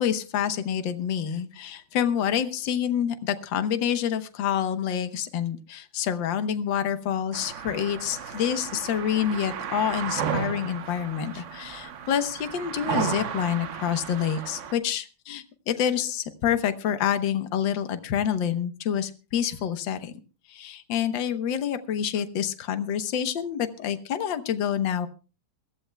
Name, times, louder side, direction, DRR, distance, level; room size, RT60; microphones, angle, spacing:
voice 1, 0.0-20.1 20.5-25.1, left 9 dB, 65° left, 10 dB, 1.7 m, -27 dB
sound 1, 7.3-14.7, right 8 dB, 70° right, 0.7 m, -34 dB
22.5 x 15.0 x 2.2 m, 0.33 s
omnidirectional pair, 2.3 m